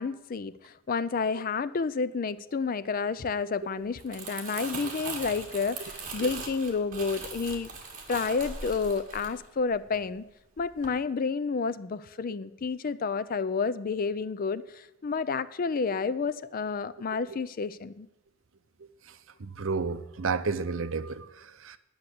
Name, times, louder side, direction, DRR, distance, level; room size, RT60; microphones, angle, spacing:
voice 1, 0.0-7.7 8.1-10.2 10.6-18.1, left 5 dB, 45° left, 16 dB, 0.4 m, -30 dB
Crumpling crinkling, 3.8-10.2 10.6-10.9, right 4 dB, 40° right, 2.0 m, -40 dB
voice 2, 18.8-21.8, right 4 dB, 70° right, 13 dB, 0.6 m, -32 dB
10.5 x 6.4 x 8.2 m, 0.87 s
head